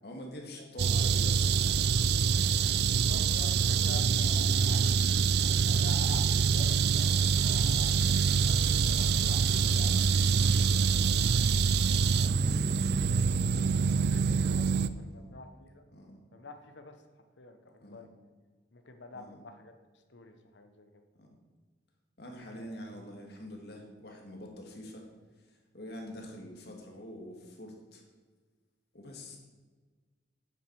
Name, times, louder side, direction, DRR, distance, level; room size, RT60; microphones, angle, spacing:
voice 1, 0.0-1.7 3.9-4.1 7.5-7.7 10.8-11.2 12.4-12.6 15.1-15.3 15.9-16.2 17.8-18.0 19.1-19.4 21.2-21.3 22.2-25.1 25.4-28.0 28.9-29.4, left 1 dB, 60° left, 1 dB, 1.9 m, -46 dB
sound 1, 0.8-14.9, right 6 dB, 60° right, 0.4 m, -25 dB
voice 2, 2.8-11.3 11.9-13.0 14.0-15.8 16.3-17.0 17.4-18.1 18.7-19.7 20.1-21.0 29.3-29.4, left 2 dB, 75° left, 6 dB, 1.0 m, -48 dB
9.2 x 7.7 x 4.7 m, 1.4 s
head